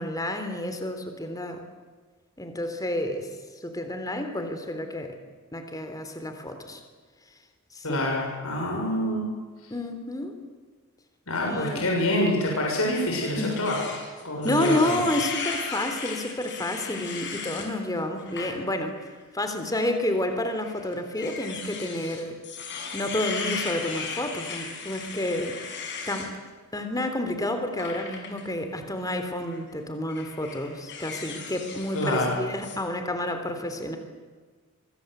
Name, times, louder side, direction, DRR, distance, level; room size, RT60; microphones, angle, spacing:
voice 1, 0.0-1.6 2.4-3.3 3.6-5.2 5.5-6.8 7.7-8.0 9.7-10.4 11.5-11.8 13.4-13.6 14.4-18.9 19.3-22.4 22.9-26.3 26.7-34.0, left 1 dB, 15° left, 7 dB, 3.5 m, -30 dB
voice 2, 7.8-9.3 11.3-13.8 14.2-15.0 31.9-32.4, left 1 dB, 75° left, -1 dB, 7.1 m, -26 dB
sound 1, 12.9-17.7 18.2-18.5 19.0-19.1 20.1-26.3 27.8-28.4 29.4-29.6 30.1-32.3 32.6-32.8, left 5 dB, 55° left, 6.0 m, -36 dB
25.0 x 24.0 x 8.2 m, 1.4 s
head